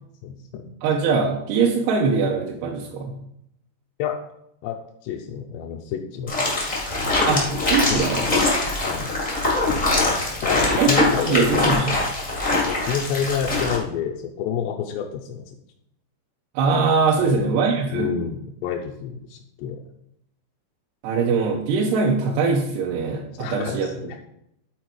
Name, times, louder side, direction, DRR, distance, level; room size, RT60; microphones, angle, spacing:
voice 1, 0.2-0.7 4.0-4.2 4.6-4.8 5.0-6.6 7.9-8.1 8.8-9.1 10.4-11.9 12.5-15.5 17.2-17.5 17.9-19.8 23.4-24.2, left 8 dB, 85° left, 0 dB, 2.8 m, -29 dB
voice 2, 0.8-3.2 7.3-8.3 10.8-11.9 16.6-18.1 21.0-23.9, right 4 dB, 80° right, -1 dB, 2.7 m, -22 dB
sound 1, 6.3-13.8, left 2 dB, 65° left, 0.4 m, -23 dB
11.0 x 4.4 x 4.6 m, 0.77 s
omnidirectional pair, 4.9 m